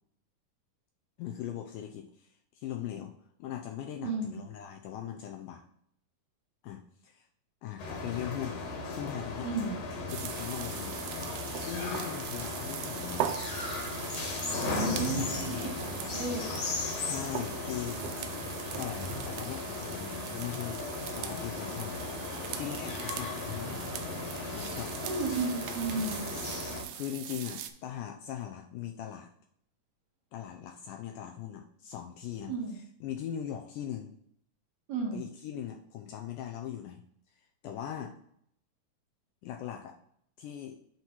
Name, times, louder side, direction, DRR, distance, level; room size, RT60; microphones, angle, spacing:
voice 1, 1.2-5.6 6.6-7.3 7.6-8.6 9.0-9.5 10.1-11.0 11.7-13.3 15.0-15.8 17.0-18.3 18.8-20.8 21.1-22.0 22.6-24.1 24.5-24.9 26.9-29.3 30.3-34.1 35.1-37.0 37.6-38.2 39.4-39.9 40.4-40.8, left 10 dB, 80° left, 3 dB, 1.9 m, -40 dB
voice 2, 4.0-4.4 9.4-9.8 14.6-16.4 25.0-26.3 32.5-32.8 34.9-35.3, right 3 dB, 60° right, -3 dB, 2.9 m, -33 dB
sound 1, 7.8-26.8, left 3 dB, 60° left, 2.6 m, -37 dB
sound 2, 10.1-27.7, right 10 dB, 85° right, 2.3 m, -41 dB
7.9 x 3.0 x 5.9 m, 0.68 s
omnidirectional pair, 4.1 m